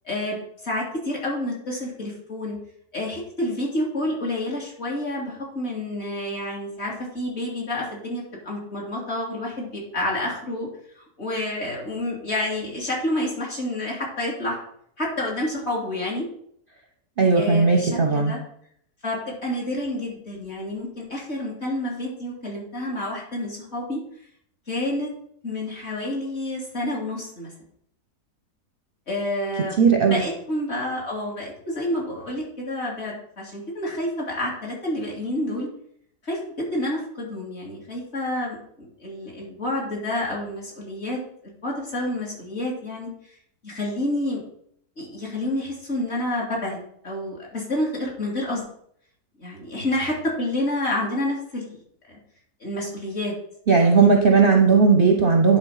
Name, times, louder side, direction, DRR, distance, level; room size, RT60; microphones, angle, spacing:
voice 1, 0.0-0.4 0.6-2.6 2.9-10.7 11.0-14.6 15.0-16.3 17.4-18.4 19.0-24.0 24.7-25.1 25.4-27.5 29.1-35.7 36.2-43.1 43.6-44.4 45.0-46.8 47.0-48.7 49.4-51.8 52.1-52.2 52.6-53.3 53.8-54.2, left 1 dB, 40° left, -3 dB, 2.9 m, -29 dB
voice 2, 17.2-18.3 29.8-30.2 53.7-55.6, right 4 dB, 45° right, 2 dB, 0.8 m, -17 dB
10.0 x 4.0 x 5.6 m, 0.68 s
omnidirectional pair, 1.7 m